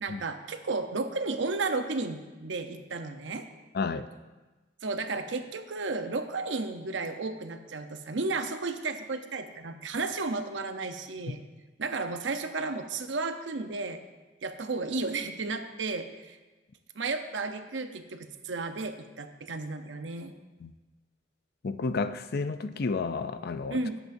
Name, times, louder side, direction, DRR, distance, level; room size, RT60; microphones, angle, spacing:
voice 1, 0.0-3.5 4.8-11.4 11.8-14.0 14.4-16.4 17.0-20.3 23.7-24.0, right 3 dB, 85° right, 7 dB, 0.8 m, -33 dB
voice 2, 3.7-4.1 20.6-20.7 21.6-23.8, left 4 dB, 55° left, 11 dB, 0.5 m, -31 dB
17.5 x 8.1 x 2.7 m, 1.2 s
head